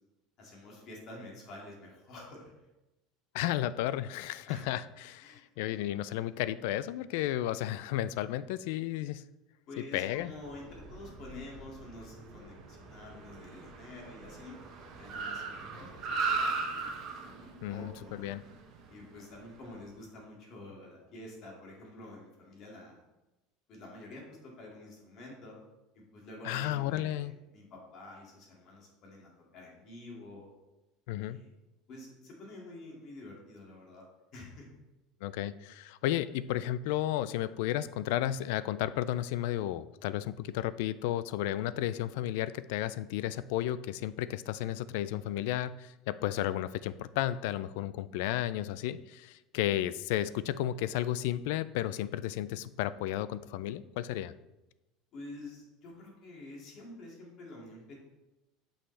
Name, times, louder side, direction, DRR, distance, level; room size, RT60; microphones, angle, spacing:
voice 1, 0.4-2.5 4.5-4.7 5.2-5.4 9.7-14.6 14.9-17.1 17.4-18.3 18.9-23.0 23.7-25.6 25.9-30.5 31.2-31.5 31.9-34.0 34.3-34.7 55.1-58.0, left 2 dB, 40° left, -2 dB, 2.2 m, -48 dB
voice 2, 3.3-9.2 9.8-10.3 17.6-18.4 26.4-27.3 31.1-31.4 35.2-54.3, left 13 dB, 70° left, 16 dB, 0.3 m, -33 dB
Car, 10.3-19.8, right 4 dB, 40° right, 1.2 m, -39 dB
8.5 x 5.6 x 3.3 m, 1.0 s
cardioid pair, 165°, 0 cm